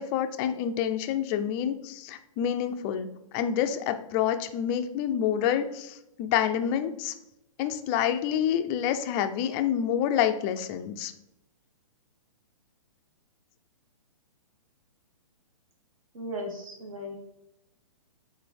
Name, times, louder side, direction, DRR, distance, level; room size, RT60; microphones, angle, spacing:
voice 1, 0.0-3.1 3.3-7.1 7.6-11.1, left 9 dB, 20° left, 8 dB, 0.4 m, -28 dB
voice 2, 16.1-17.2, equal, 70° right, 1 dB, 2.2 m, -36 dB
8.1 x 4.0 x 3.4 m, 0.86 s
hypercardioid pair, 150°, 18 cm